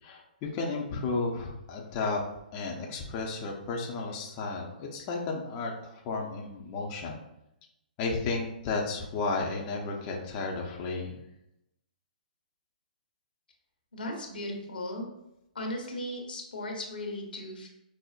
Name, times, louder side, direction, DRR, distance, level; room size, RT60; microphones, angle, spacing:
voice 1, 0.0-2.2 2.5-7.2 8.0-11.2, left 3 dB, 30° left, 0 dB, 0.5 m, -33 dB
voice 2, 13.9-15.1 15.5-17.7, left 1 dB, 85° left, 1 dB, 0.9 m, -36 dB
5.1 x 2.0 x 2.4 m, 0.84 s
hypercardioid pair, 135°, 5 cm